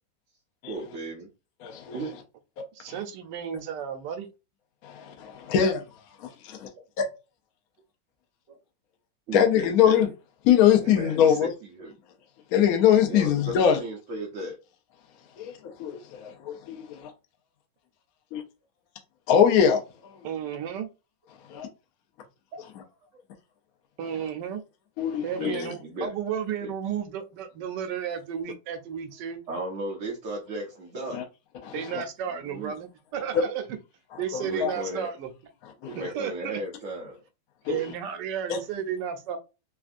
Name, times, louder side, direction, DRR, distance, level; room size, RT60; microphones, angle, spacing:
voice 1, 0.7-1.3 1.9-2.2 8.5-8.6 9.3-9.7 10.8-11.4 11.8-11.9 13.1-14.6 22.5-22.6 23.1-23.2 25.1-26.1 26.6-26.7 29.5-31.2 32.3-32.8 34.4-35.1 35.8-37.2, right 1 dB, 60° right, 0.8 m, -35 dB
voice 2, 1.6-2.0 4.8-5.8 6.2-6.7 7.0-7.1 9.3-10.1 10.4-11.5 12.5-13.8 15.4-17.1 18.3-18.4 19.3-20.3 21.5-21.7 25.0-25.5 31.1-31.2 31.6-32.0 33.3-33.4 34.1-34.7 35.8-36.0 37.6-37.8 38.5-38.6, left 9 dB, 65° left, 1.0 m, -23 dB
voice 3, 2.8-4.3 20.2-20.9 24.0-24.6 25.2-29.4 31.7-33.6 34.2-35.3 35.9-36.6 37.7-39.4, right 8 dB, 85° right, 1.2 m, -33 dB
3.4 x 2.3 x 2.5 m
omnidirectional pair, 1.9 m